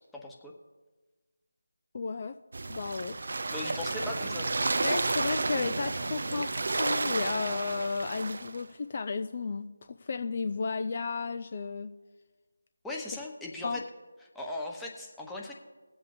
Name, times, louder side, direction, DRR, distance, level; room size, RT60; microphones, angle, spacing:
voice 1, 0.1-0.5 3.5-4.5 12.8-13.8 14.2-15.5, left 2 dB, 5° left, -2 dB, 1.0 m, -38 dB
voice 2, 1.9-2.4 2.7-3.2 4.8-9.7 10.0-11.9 13.6-13.8, left 4 dB, 40° left, 9 dB, 0.4 m, -33 dB
sound 1, 2.5-8.6, right 3 dB, 55° right, 0.6 m, -31 dB
21.0 x 7.8 x 2.7 m, 1.3 s
figure-of-eight pair, 165°, 0 cm